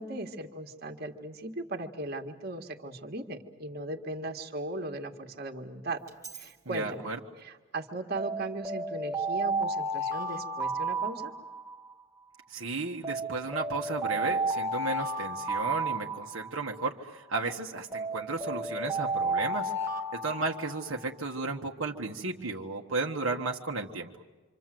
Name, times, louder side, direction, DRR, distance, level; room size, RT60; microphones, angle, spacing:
voice 1, 0.0-6.0 6.3-7.1 7.4-11.3, right 2 dB, 50° right, 3 dB, 1.8 m, -37 dB
Alarm, 6.1-6.5 8.2-11.9 13.0-16.8 17.9-21.1, right 2 dB, 15° right, 1.5 m, -32 dB
voice 2, 6.6-7.2 12.5-19.7 20.1-24.1, right 3 dB, 75° right, 1 dB, 1.4 m, -34 dB
26.5 x 26.0 x 7.7 m, 1.3 s
head